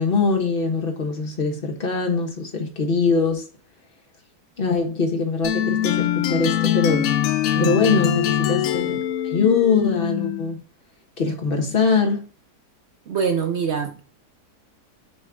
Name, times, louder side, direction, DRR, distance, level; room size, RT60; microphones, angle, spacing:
voice 1, 0.0-3.5 4.6-7.1 7.6-9.0 9.2-10.6 11.2-12.2, left 4 dB, 35° left, 1.4 m, -22 dB
sound 1, 5.4-10.6, left 12 dB, 70° left, 0.9 m, -23 dB
voice 2, 13.1-14.0, right 6 dB, 60° right, 0.7 m, -24 dB
7.0 x 3.2 x 4.9 m
omnidirectional pair, 1.8 m